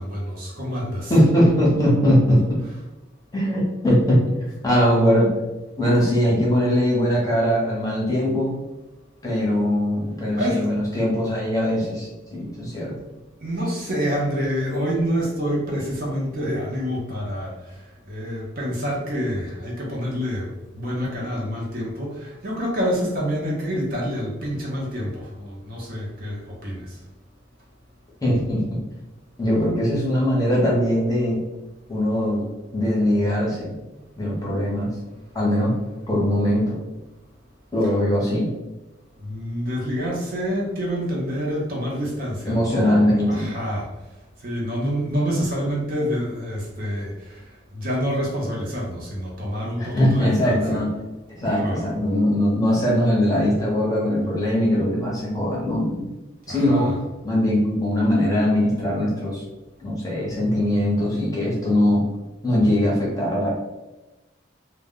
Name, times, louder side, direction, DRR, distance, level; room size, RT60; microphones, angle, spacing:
voice 1, 0.0-1.1 10.3-10.7 13.4-17.6 18.1-20.5 20.7-27.0 39.2-43.0 43.3-43.9 44.4-47.4 47.7-50.6 51.4-51.8 56.5-57.0, equal, 45° right, -2 dB, 0.6 m, -27 dB
voice 2, 1.1-2.4 3.3-4.2 4.6-5.3 5.8-8.5 9.2-12.9 28.2-28.8 29.4-31.4 31.9-32.5 32.7-33.7 34.2-34.9 35.3-35.8 36.1-36.8 37.7-38.5 42.5-43.5 49.8-50.9 51.3-56.0 56.5-56.9 57.2-59.4 59.8-62.1 62.4-63.5, equal, 20° left, -4 dB, 0.7 m, -21 dB
2.1 x 2.1 x 3.6 m, 1.1 s
head